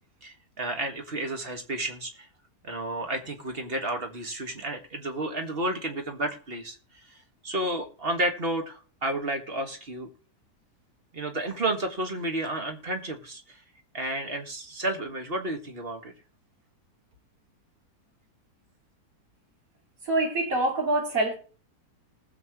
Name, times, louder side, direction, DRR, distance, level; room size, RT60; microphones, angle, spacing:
voice 1, 0.2-2.3 2.6-6.8 7.0-7.2 7.4-10.1 11.1-13.6 13.9-16.1, right 1 dB, 35° right, 1.9 m, -31 dB
voice 2, 20.1-21.3, right 2 dB, 55° right, 2.9 m, -25 dB
19.5 x 7.6 x 3.1 m
omnidirectional pair, 1.8 m